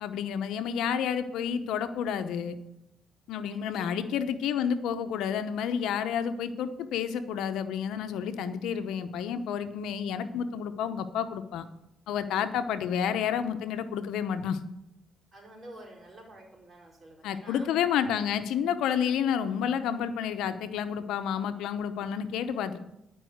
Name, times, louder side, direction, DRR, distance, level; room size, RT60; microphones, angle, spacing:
voice 1, 0.0-2.5 3.3-11.7 12.1-14.6 17.2-22.8, left 8 dB, 85° left, 10 dB, 0.8 m, -30 dB
voice 2, 15.3-17.7, right 1 dB, 35° right, -1 dB, 4.5 m, -49 dB
11.0 x 5.4 x 7.8 m, 0.84 s
cardioid pair, 90°, 0 cm